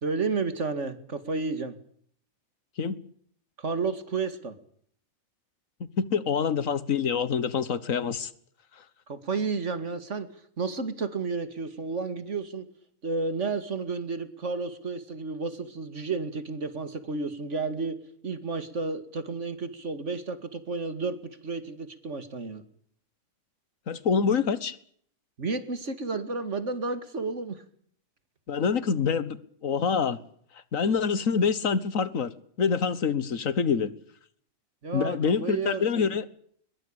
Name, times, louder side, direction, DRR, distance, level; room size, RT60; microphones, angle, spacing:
voice 1, 0.0-1.8 3.6-4.5 9.1-10.3 10.6-12.7 13.0-18.0 18.2-22.6 25.4-27.6 34.8-36.1, right 4 dB, 55° right, 2.6 m, -31 dB
voice 2, 6.0-8.3 23.9-24.8 28.5-29.4 29.6-30.2 30.7-32.3 32.6-33.9 34.9-36.2, left 6 dB, 70° left, 1.8 m, -26 dB
22.0 x 21.5 x 8.9 m
omnidirectional pair, 1.5 m